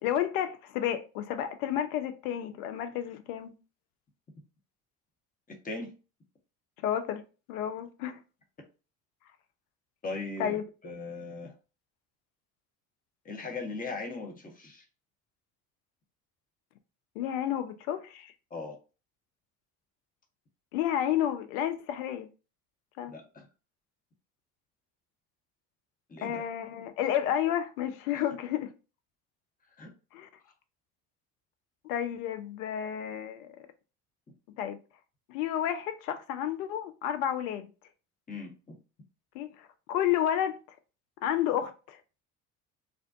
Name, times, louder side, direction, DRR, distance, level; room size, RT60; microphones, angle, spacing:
voice 1, 0.0-3.5 6.8-7.2 7.5-8.2 10.4-10.6 17.2-18.3 20.7-22.3 23.0-23.1 26.2-28.7 30.1-30.3 31.8-33.5 34.6-34.8 35.3-37.7 39.3-40.6 41.2-42.0, left 10 dB, 70° left, 0.5 m, -31 dB
voice 2, 5.5-5.9 10.0-11.5 13.2-14.8 18.5-18.8 23.1-23.5 26.1-26.4 29.8-29.9 38.3-38.7, left 3 dB, 20° left, 0.8 m, -39 dB
2.5 x 2.1 x 2.4 m
hypercardioid pair, 60°, 46 cm